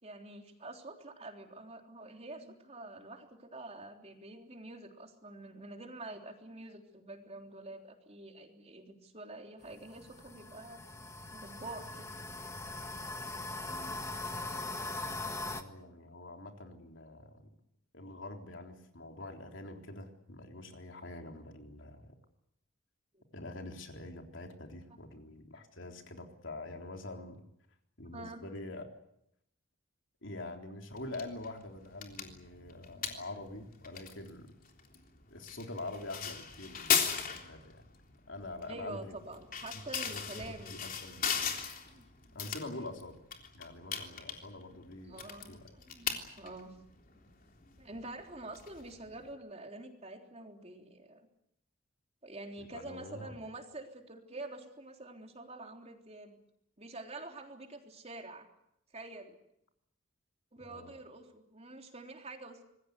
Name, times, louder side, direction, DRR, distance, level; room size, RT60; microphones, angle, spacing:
voice 1, 0.0-12.1 23.1-23.2 28.1-28.4 32.9-33.2 38.7-40.8 41.9-42.4 42.8-42.9 44.7-44.8 45.1-46.7 47.1-47.3 47.8-51.2 52.2-56.4 56.8-58.5 58.9-59.4 60.5-62.6, right 2 dB, 30° right, 3 dB, 3.5 m, -47 dB
sound 1, 9.6-15.6, left 2 dB, 15° left, 1.7 m, -41 dB
voice 2, 13.6-14.0 15.4-17.5 17.9-22.2 23.3-27.4 28.0-28.8 30.2-34.5 35.3-37.8 38.3-39.2 39.7-41.6 42.3-43.2 43.5-45.2 45.5-45.7 52.6-53.4 60.6-60.9, left 2 dB, 60° left, 3 dB, 3.7 m, -45 dB
sound 2, 30.9-49.3, left 7 dB, 45° left, 3.4 m, -39 dB
26.5 x 20.5 x 8.2 m, 0.78 s
head